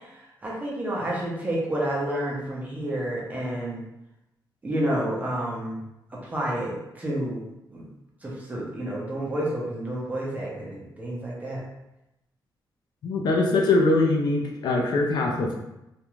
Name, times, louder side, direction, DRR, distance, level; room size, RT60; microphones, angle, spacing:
voice 1, 0.0-3.8 4.6-5.8 6.1-7.9 8.2-11.6, right 1 dB, 20° right, -4 dB, 0.7 m, -30 dB
voice 2, 13.0-15.5, left 2 dB, 65° left, 1 dB, 0.5 m, -22 dB
2.5 x 2.2 x 3.0 m, 0.90 s
wide cardioid pair, 135°, 8 cm